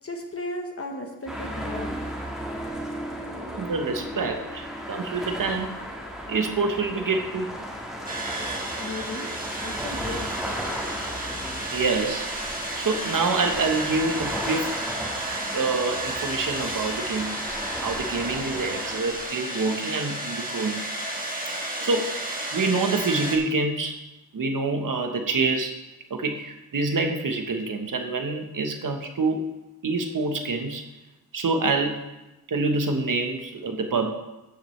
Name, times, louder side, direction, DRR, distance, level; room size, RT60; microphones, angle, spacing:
voice 1, 0.0-2.0 8.8-9.3 9.6-10.4 21.8-22.1, left 2 dB, 40° left, 2 dB, 1.2 m, -35 dB
sound 1, 1.3-19.0, equal, ahead, 1.7 m, -35 dB
voice 2, 3.6-5.8 6.3-7.5 11.7-12.3 12.8-14.8 15.5-17.6 17.8-20.9 21.8-22.2 22.5-24.0 24.3-25.8 26.1-29.6 29.8-30.8 31.3-32.1 32.5-34.1, right 3 dB, 60° right, 5 dB, 1.2 m, -26 dB
sound 2, 8.1-23.4, right 1 dB, 25° right, 1.4 m, -32 dB
14.0 x 6.0 x 3.2 m, 1.0 s
wide cardioid pair, 110°, 37 cm